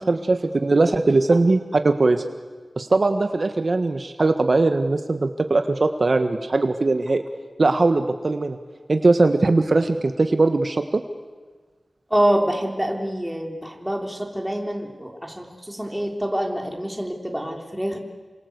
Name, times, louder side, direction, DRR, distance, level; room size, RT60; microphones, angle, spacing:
voice 1, 0.1-2.2 2.8-7.2 7.6-8.6 8.9-11.0, right 3 dB, 55° right, 7 dB, 1.4 m, -20 dB
voice 2, 12.1-18.0, right 1 dB, 5° right, 2 dB, 3.8 m, -26 dB
28.0 x 25.5 x 8.1 m, 1.4 s
wide cardioid pair, 75°, 0 cm